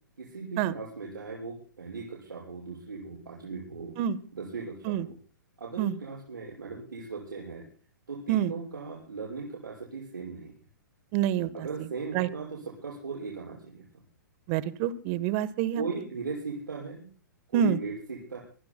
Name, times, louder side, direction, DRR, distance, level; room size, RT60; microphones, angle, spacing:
voice 1, 0.2-3.9 4.3-5.0 5.6-7.6 8.1-10.5 11.5-13.8 15.7-17.1 17.5-18.4, right 4 dB, 85° right, -4 dB, 6.2 m, -38 dB
voice 2, 11.1-11.9 12.1-12.3 14.5-15.8 17.5-17.8, right 10 dB, 40° right, 16 dB, 1.2 m, -27 dB
24.5 x 21.0 x 2.2 m, 0.40 s
hypercardioid pair, 125°, 11 cm